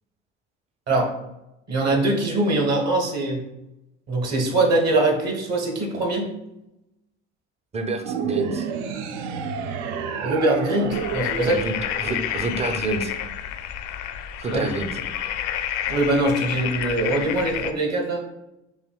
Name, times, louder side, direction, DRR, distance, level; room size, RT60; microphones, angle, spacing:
voice 1, 1.7-3.4 4.1-6.3 10.2-11.6 12.0-12.2 14.5-14.6 15.9-18.2, right 2 dB, 50° right, 0 dB, 1.2 m, -22 dB
voice 2, 7.7-8.7 11.4-13.1 14.4-15.0, right 3 dB, 20° right, 6 dB, 0.5 m, -28 dB
sound 1, 8.0-12.5, right 6 dB, 70° right, 0.5 m, -30 dB
sound 2, 10.9-17.7, left 10 dB, 60° left, 0.4 m, -30 dB
4.9 x 2.8 x 2.2 m, 0.92 s
hypercardioid pair, 55°, 34 cm